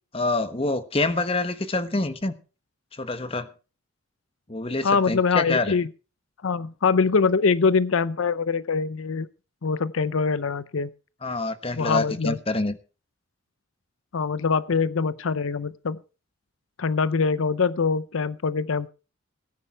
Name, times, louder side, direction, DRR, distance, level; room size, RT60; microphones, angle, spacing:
voice 1, 0.1-2.3 3.0-3.5 4.5-5.8 11.2-12.8, left 2 dB, 30° left, 1.3 m, -26 dB
voice 2, 4.8-5.9 6.4-9.3 9.6-10.9 11.7-12.4 14.1-16.0 16.8-18.9, left 5 dB, 80° left, 0.6 m, -23 dB
18.0 x 10.0 x 4.5 m
head